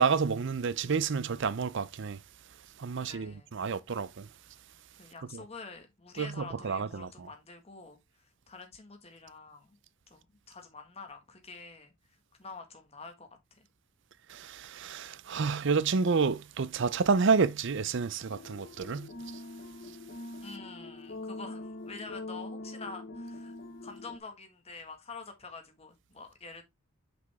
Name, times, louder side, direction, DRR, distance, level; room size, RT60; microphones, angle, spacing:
voice 1, 0.0-2.2 2.8-4.3 5.3-5.4 6.2-7.3 14.3-19.1, right 5 dB, 55° right, 0.5 m, -29 dB
voice 2, 3.0-3.6 5.0-9.8 10.1-11.9 12.4-13.7 20.4-26.6, left 4 dB, 30° left, 1.5 m, -47 dB
sound 1, 18.3-24.2, left 2 dB, 45° left, 1.0 m, -43 dB
6.1 x 5.2 x 3.5 m
head